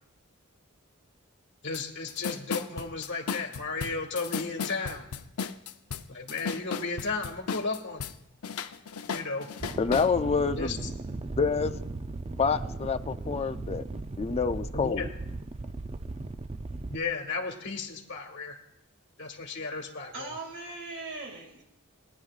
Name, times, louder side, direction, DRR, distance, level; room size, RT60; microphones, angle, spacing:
voice 1, 1.6-5.0 6.1-8.0 9.1-9.5 10.6-10.8 14.7-15.1 16.9-18.6 19.2-20.3, left 4 dB, 55° left, 3 dB, 1.7 m, -34 dB
sound 1, 1.7-1.8 2.1-8.1 8.4-10.1, left 6 dB, 80° left, 0.6 m, -35 dB
sound 2, 9.6-17.0, right 2 dB, 30° right, 0.5 m, -37 dB
voice 2, 9.8-10.7 11.4-11.7 12.4-13.8 14.2-15.1, left 5 dB, 30° left, 9 dB, 0.4 m, -27 dB
voice 3, 20.1-21.6, right 3 dB, 60° right, 1 dB, 2.1 m, -39 dB
21.0 x 10.0 x 2.4 m, 0.84 s
head